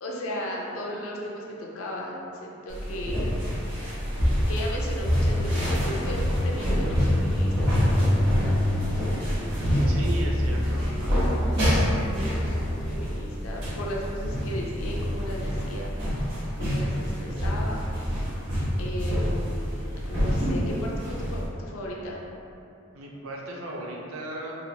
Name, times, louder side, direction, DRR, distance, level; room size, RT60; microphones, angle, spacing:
voice 1, 0.0-3.6 4.1-8.6 8.9-9.3 9.7-10.3 12.1-17.8 18.1-18.2 18.8-22.2, equal, 85° left, -3 dB, 0.6 m, -36 dB
sound 1, 2.7-21.5, equal, 60° right, 1.3 m, -27 dB
sound 2, 5.2-12.9, left 1 dB, 5° left, 0.3 m, -28 dB
voice 2, 9.9-11.3 22.9-24.5, right 1 dB, 85° right, -2 dB, 0.6 m, -36 dB
4.1 x 2.6 x 2.8 m, 2.8 s
head